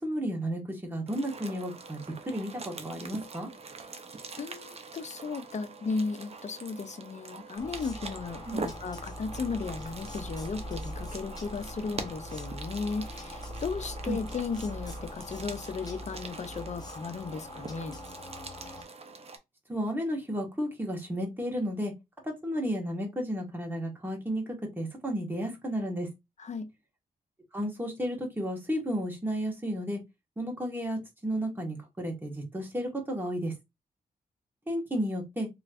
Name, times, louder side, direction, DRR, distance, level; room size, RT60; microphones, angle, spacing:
voice 1, 0.0-2.0 2.3-3.5 8.5-8.7 14.1-14.2 19.7-21.9 22.2-26.1 27.5-30.0 30.4-33.5 34.7-35.5, equal, 15° right, 1.5 m, -33 dB
sound 1, 1.1-19.4, right 4 dB, 40° right, 0.7 m, -44 dB
voice 2, 4.4-18.0 26.4-26.7, left 4 dB, 45° left, 0.6 m, -35 dB
sound 2, 7.6-18.8, left 1 dB, 25° left, 1.0 m, -42 dB
3.1 x 3.0 x 2.5 m
cardioid pair, 80°, 16 cm